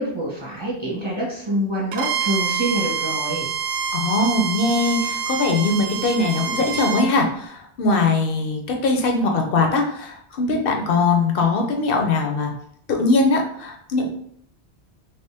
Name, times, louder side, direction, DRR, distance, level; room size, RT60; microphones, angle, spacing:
voice 1, 0.0-3.5, right 1 dB, 30° right, -5 dB, 1.0 m, -26 dB
Bowed string instrument, 1.9-7.1, right 7 dB, 65° right, 0.8 m, -26 dB
voice 2, 3.9-12.5 12.9-14.1, left 3 dB, 60° left, 2 dB, 0.8 m, -21 dB
3.0 x 2.9 x 3.3 m, 0.66 s
omnidirectional pair, 1.1 m